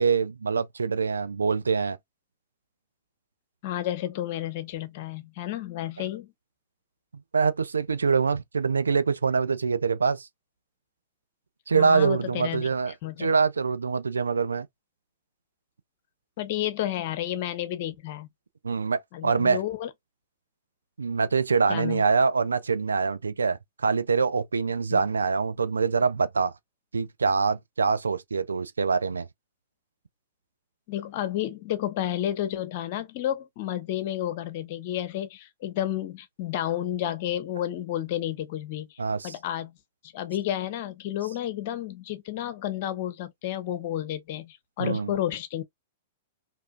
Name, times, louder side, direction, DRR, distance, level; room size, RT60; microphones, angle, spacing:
voice 1, 0.0-2.0 7.3-10.3 11.7-12.9 13.2-14.7 18.6-19.6 21.0-26.5 26.9-29.3 39.0-39.3 44.8-45.1, right 5 dB, 90° right, 0.3 m, -24 dB
voice 2, 3.6-6.3 11.7-13.3 16.4-18.3 19.1-19.9 21.7-22.0 24.9-25.1 30.9-39.8 40.0-45.6, left 12 dB, 55° left, 0.7 m, -31 dB
2.9 x 2.5 x 2.4 m
hypercardioid pair, 110°, 0 cm